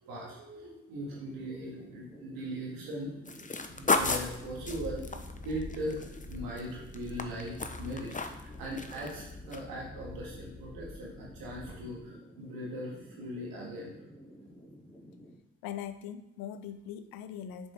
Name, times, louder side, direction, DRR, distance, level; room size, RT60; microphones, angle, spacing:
voice 1, 0.0-3.2 3.7-5.0 5.4-14.0, equal, 90° right, -3 dB, 1.8 m, -39 dB
sound 1, 0.9-15.4, equal, ahead, 2.4 m, -52 dB
sound 2, 3.2-6.6 6.9-8.5 8.8-9.2 9.5-9.6, left 3 dB, 25° left, 0.7 m, -33 dB
sound 3, 3.6-12.0, left 2 dB, 40° left, 1.4 m, -47 dB
voice 2, 15.6-17.7, left 9 dB, 90° left, 11 dB, 0.5 m, -41 dB
7.0 x 5.1 x 3.4 m, 0.90 s
supercardioid pair, 45°, 34 cm